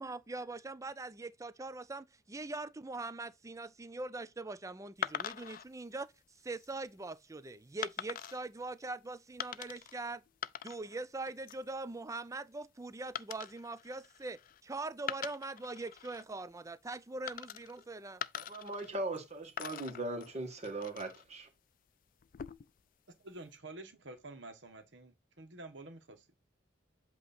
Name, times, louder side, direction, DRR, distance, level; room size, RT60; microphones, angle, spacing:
voice 1, 0.0-6.1 6.4-10.2 10.6-18.2, right 3 dB, 15° right, 0.4 m, -42 dB
sound 1, 5.0-5.7 6.4-6.7 7.8-8.4 9.4-9.9 10.3-11.0 11.3-11.7 13.2-14.6 15.0-16.2 17.3-17.8 18.2-19.2 19.6-21.2 22.2-22.8, left 10 dB, 50° left, 0.4 m, -43 dB
voice 2, 18.4-21.5, right 2 dB, 35° right, 1.8 m, -39 dB
voice 3, 23.2-26.2, right 2 dB, 70° right, 1.4 m, -49 dB
8.0 x 3.0 x 4.3 m
head